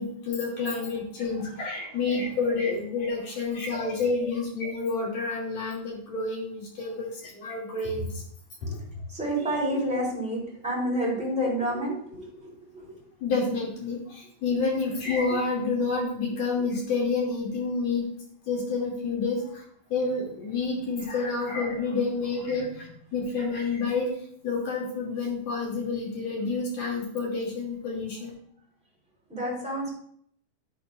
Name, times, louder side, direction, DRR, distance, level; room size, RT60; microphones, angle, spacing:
voice 1, 0.0-8.2 8.6-8.8 13.2-18.0 18.5-19.6 19.9-24.1 24.4-28.3, left 4 dB, 40° left, -3 dB, 3.1 m, -29 dB
voice 2, 9.1-13.0 29.3-29.9, equal, ahead, -5 dB, 2.8 m, -29 dB
11.5 x 6.9 x 2.6 m, 0.63 s
omnidirectional pair, 5.7 m